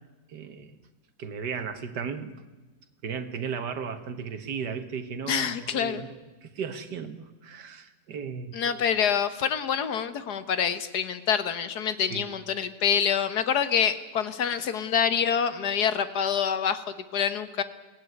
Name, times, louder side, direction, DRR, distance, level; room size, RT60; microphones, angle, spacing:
voice 1, 0.3-0.8 1.2-2.3 3.0-8.5 12.1-12.2, right 6 dB, 80° right, 8 dB, 2.1 m, -35 dB
voice 2, 5.3-6.0 8.5-17.6, left 7 dB, 70° left, 12 dB, 1.8 m, -26 dB
22.0 x 17.0 x 9.6 m, 1.2 s
omnidirectional pair, 1.8 m